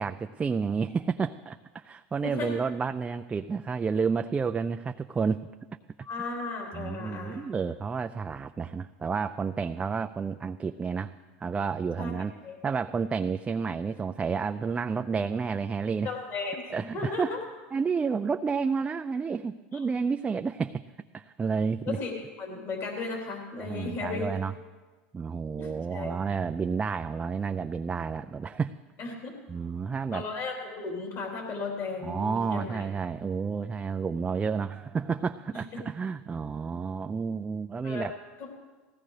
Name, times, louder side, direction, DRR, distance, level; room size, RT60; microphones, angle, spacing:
voice 1, 0.0-5.5 6.7-12.3 12.6-16.1 16.7-17.3 17.7-20.8 21.1-22.0 23.6-24.5 25.1-28.7 29.5-30.2 32.0-38.1, right 5 dB, 20° right, 8 dB, 0.4 m, -30 dB
voice 2, 2.2-2.5 6.0-7.4 12.0-12.1 12.4-12.6 16.0-17.4 19.7-19.8 21.9-24.3 25.6-26.1 29.0-29.3 30.1-32.9 35.5-35.7 37.8-38.1 38.4-38.5, left 4 dB, 45° left, -1 dB, 3.6 m, -35 dB
19.0 x 16.5 x 3.3 m, 1.3 s
supercardioid pair, 110°, 6 cm